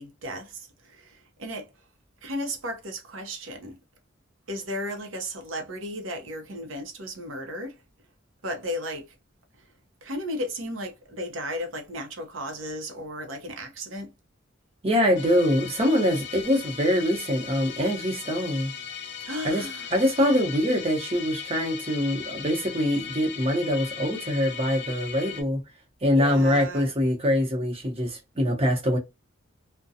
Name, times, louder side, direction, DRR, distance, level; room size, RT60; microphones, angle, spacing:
voice 1, 0.0-1.7 2.2-3.8 4.5-7.8 8.4-9.1 10.0-14.1 19.2-19.9 26.1-26.9, equal, 90° right, 0.8 m, -34 dB
voice 2, 14.8-18.7 19.4-25.6 26.0-29.0, equal, 30° right, 0.8 m, -24 dB
Musical instrument, 15.2-25.4, left 8 dB, 65° left, 0.6 m, -38 dB
2.4 x 2.2 x 2.7 m
head